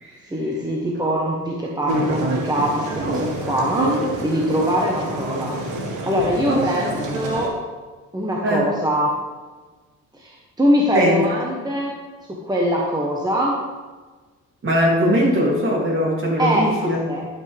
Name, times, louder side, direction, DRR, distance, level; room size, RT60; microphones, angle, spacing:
voice 1, 0.3-5.6 6.0-7.6 8.1-9.2 10.1-12.0 12.3-13.6 16.4-17.3, equal, 15° right, -2 dB, 1.2 m, -23 dB
sound 1, 1.9-7.5, right 2 dB, 90° right, 1.4 m, -27 dB
voice 2, 6.5-7.0 8.4-8.7 10.9-11.2 14.6-17.0, equal, 45° right, -2 dB, 2.8 m, -20 dB
11.5 x 5.9 x 3.4 m, 1.3 s
cardioid pair, 90°, 30 cm